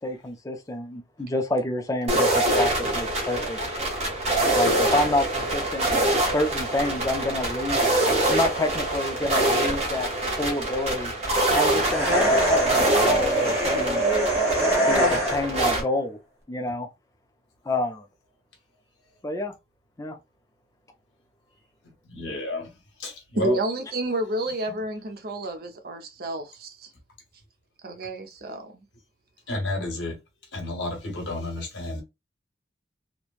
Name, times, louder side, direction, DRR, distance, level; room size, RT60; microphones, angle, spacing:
voice 1, 0.0-3.6 4.5-8.0 8.3-10.1 10.4-11.1 11.5-14.0 14.8-16.2 16.5-16.9 17.7-18.0 19.2-19.5 20.0-20.2, left 1 dB, 20° left, 0.4 m, -28 dB
sound 1, 2.1-15.8, right 1 dB, 35° right, 1.0 m, -25 dB
sound 2, 11.8-15.7, right 1 dB, 15° right, 1.0 m, -23 dB
voice 2, 22.1-22.7 23.0-23.6 29.5-30.2 30.5-32.0, left 2 dB, 85° left, 1.2 m, -31 dB
voice 3, 23.4-26.9 27.8-28.8, right 1 dB, 55° right, 0.6 m, -30 dB
3.1 x 2.1 x 2.3 m
head